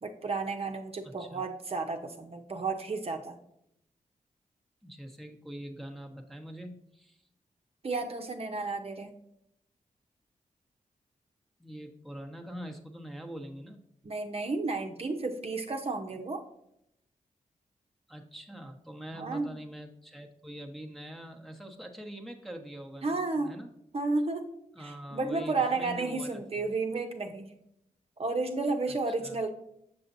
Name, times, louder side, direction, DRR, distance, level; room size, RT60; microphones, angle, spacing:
voice 1, 0.0-3.4 7.8-9.1 14.0-16.4 19.1-19.5 23.0-23.5 23.9-24.5 24.8-27.5 28.2-29.5, right 3 dB, 45° right, 4 dB, 0.8 m, -32 dB
voice 2, 1.0-1.4 4.8-7.2 11.6-13.8 18.1-23.7 24.7-26.4 29.1-29.4, right 1 dB, ahead, 1 dB, 1.0 m, -44 dB
7.0 x 6.5 x 2.7 m, 0.77 s
wide cardioid pair, 90°, 14 cm